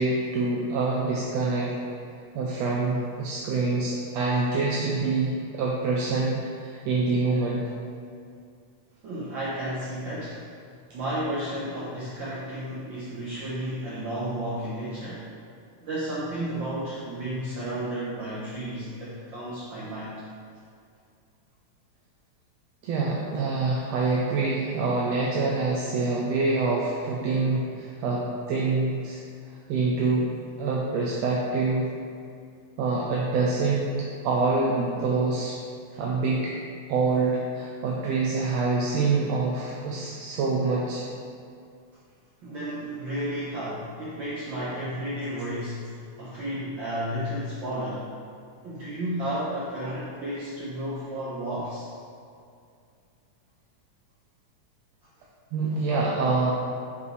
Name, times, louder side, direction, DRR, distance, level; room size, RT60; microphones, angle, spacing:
voice 1, 0.0-1.8 2.4-7.7 22.8-29.2 29.7-30.3 30.6-31.9 32.8-34.0 34.2-35.5 35.9-36.5 36.9-41.0 55.5-56.5, right 3 dB, 75° right, -3 dB, 1.7 m, -26 dB
voice 2, 9.0-10.4 10.9-15.3 15.8-20.1 42.4-48.1 48.6-51.9, right 1 dB, 60° right, -8 dB, 1.3 m, -32 dB
9.4 x 5.3 x 3.3 m, 2.3 s
omnidirectional pair, 3.5 m